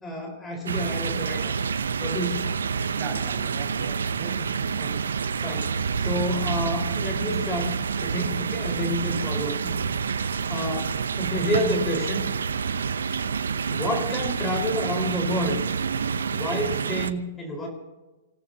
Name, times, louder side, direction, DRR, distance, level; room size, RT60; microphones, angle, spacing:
voice 1, 0.0-1.5 2.0-2.5 4.8-5.1 5.4-12.2 13.7-15.7 16.3-17.7, equal, 15° left, 1 dB, 4.6 m, -30 dB
sound 1, 0.7-17.1, right 6 dB, 85° right, 0.7 m, -28 dB
voice 2, 2.9-4.8, right 4 dB, 40° right, 0 dB, 5.9 m, -38 dB
28.0 x 17.5 x 2.9 m, 1.2 s
hypercardioid pair, 120°, 0 cm